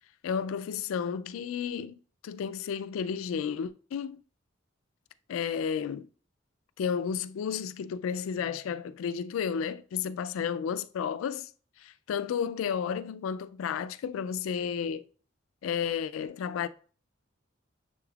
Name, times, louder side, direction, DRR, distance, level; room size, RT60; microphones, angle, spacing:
voice 1, 0.2-2.0 2.2-4.2 5.3-6.1 6.8-11.5 11.8-15.1 15.6-16.7, left 7 dB, 85° left, 0.3 m, -32 dB
6.7 x 3.3 x 2.3 m
head